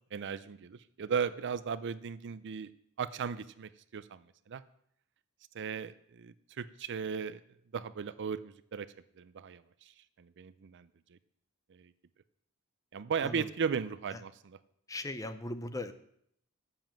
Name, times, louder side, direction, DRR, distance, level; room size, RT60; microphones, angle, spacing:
voice 1, 0.1-2.7 3.0-4.6 5.5-7.4 7.7-11.2 11.7-11.9 12.9-14.6, right 6 dB, 55° right, 15 dB, 0.5 m, -37 dB
voice 2, 14.9-15.9, left 2 dB, 15° left, 10 dB, 0.6 m, -38 dB
7.6 x 7.1 x 7.5 m, 0.70 s
head